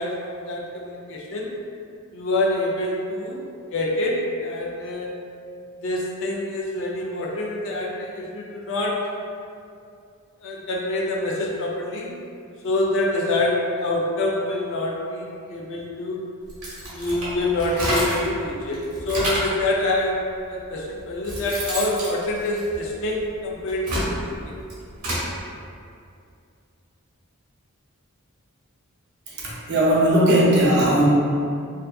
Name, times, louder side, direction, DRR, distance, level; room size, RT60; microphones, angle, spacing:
voice 1, 0.0-1.5 2.1-3.4 3.7-5.1 5.8-9.1 10.4-12.2 12.6-16.2 16.9-24.5, left 2 dB, 60° left, -2 dB, 0.4 m, -26 dB
sound 1, 16.5-18.3 18.7-19.6 20.4-20.5 21.0-23.1 23.6-25.3, right 1 dB, 90° right, 0.8 m, -28 dB
voice 2, 29.3-31.0, right 1 dB, 50° right, -5 dB, 0.5 m, -18 dB
2.5 x 2.3 x 2.2 m, 2.4 s
head